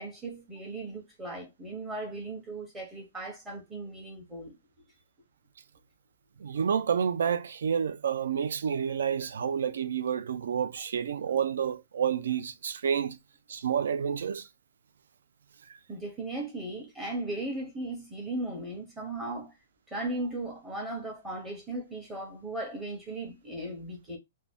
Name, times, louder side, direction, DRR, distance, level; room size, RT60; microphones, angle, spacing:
voice 1, 0.0-4.6 15.9-19.5 19.9-24.2, right 2 dB, 5° right, 0.6 m, -37 dB
voice 2, 6.4-13.2 13.5-14.5, right 7 dB, 75° right, 0.3 m, -29 dB
2.5 x 2.1 x 3.3 m
hypercardioid pair, 180°, 0 cm